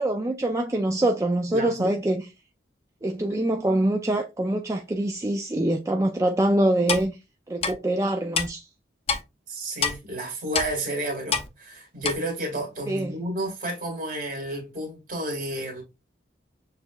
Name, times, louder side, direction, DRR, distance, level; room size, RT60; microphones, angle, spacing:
voice 1, 0.0-2.2 3.0-7.2 7.5-8.7 12.9-13.2, right 1 dB, 15° right, 0.3 m, -24 dB
voice 2, 1.5-1.9 3.3-3.4 9.5-15.8, right 1 dB, 45° right, 1.9 m, -31 dB
Clock, 6.9-7.1 7.6-7.7 8.4-8.5 9.1-9.2 9.8-10.0 10.5-10.7 11.3-11.5 12.0-12.2, left 5 dB, 35° left, 0.6 m, -25 dB
6.5 x 2.9 x 2.3 m
head